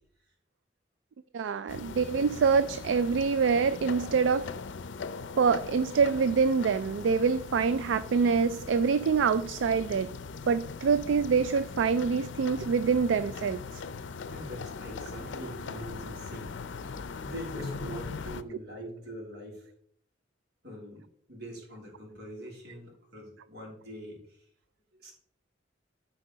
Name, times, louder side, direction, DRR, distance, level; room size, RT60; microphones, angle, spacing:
voice 1, 1.3-4.5 5.4-10.1 10.5-13.8, right 5 dB, 80° right, 0.3 m, -25 dB
sound 1, 1.7-18.4, left 4 dB, 80° left, 0.5 m, -40 dB
voice 2, 14.3-16.8 17.1-19.7 20.6-21.0 21.3-24.4 25.0-25.1, equal, 60° right, 3.1 m, -43 dB
13.5 x 4.5 x 3.9 m
head